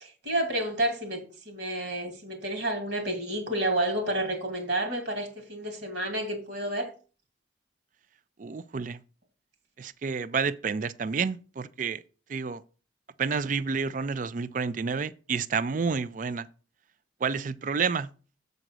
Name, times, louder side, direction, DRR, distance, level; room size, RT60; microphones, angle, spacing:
voice 1, 0.0-6.9, right 1 dB, 65° right, 2.2 m, -30 dB
voice 2, 8.4-9.0 9.8-12.0 12.3-12.6 13.2-16.5 17.2-18.1, right 5 dB, 40° right, 0.4 m, -29 dB
7.8 x 4.0 x 6.1 m
head